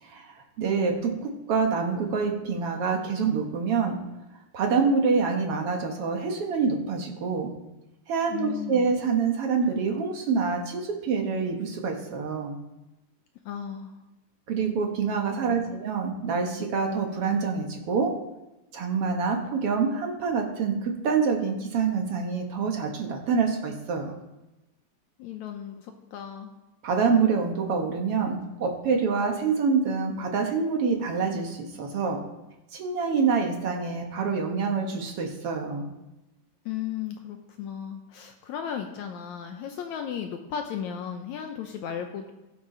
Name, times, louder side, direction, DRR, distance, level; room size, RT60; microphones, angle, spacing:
voice 1, 0.0-4.0 4.5-7.5 8.1-12.6 14.5-18.2 18.7-24.1 26.8-32.2 32.7-35.9, right 5 dB, 60° right, 2 dB, 1.6 m, -26 dB
voice 2, 8.3-8.9 13.5-13.9 15.4-15.8 25.2-26.5 36.7-42.3, left 8 dB, 75° left, 5 dB, 1.8 m, -35 dB
16.5 x 7.2 x 3.9 m, 0.99 s
omnidirectional pair, 4.0 m